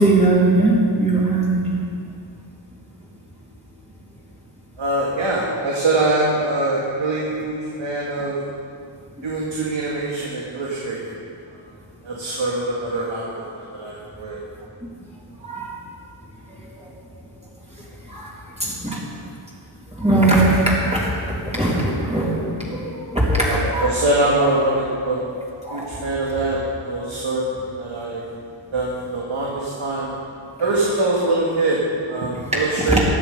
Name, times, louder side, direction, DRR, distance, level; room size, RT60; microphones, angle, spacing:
voice 1, 0.0-1.8 9.2-9.3 15.4-15.7 18.1-18.3 18.6-19.0 20.0-23.9 24.4-24.5 25.6-25.9 32.8-33.0, right 2 dB, 15° right, -6 dB, 3.2 m, -20 dB
voice 2, 4.8-8.4 9.2-11.1 12.0-13.2 13.5-14.4 23.4-25.2 25.7-28.2 28.7-30.1 30.6-33.0, right 2 dB, 70° right, -5 dB, 2.2 m, -23 dB
16.0 x 10.0 x 5.4 m, 2.3 s
wide cardioid pair, 85°, 48 cm